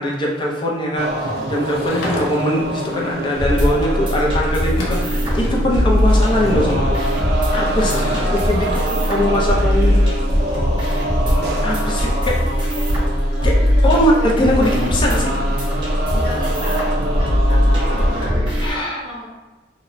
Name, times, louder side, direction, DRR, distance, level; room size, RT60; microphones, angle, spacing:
voice 1, 0.0-7.0 7.5-7.9 8.3-8.7 9.1-10.1 11.6-12.4 13.4-13.5 13.8-15.3 18.6-19.0, left 1 dB, 25° left, -3 dB, 0.4 m, -21 dB
sound 1, 1.0-18.3, right 1 dB, 55° right, 0.4 m, -27 dB
Sliding door / Wood, 1.5-2.7 4.2-4.3 4.6-5.7 7.5-8.4, left 1 dB, 90° left, 0.5 m, -31 dB
sound 2, 3.3-18.7, equal, 25° right, 0.7 m, -19 dB
voice 2, 7.5-9.6 11.8-12.8 13.3-14.3 16.1-18.4 18.7-19.3, equal, 50° left, -7 dB, 0.8 m, -34 dB
2.8 x 2.1 x 2.5 m, 1.2 s
head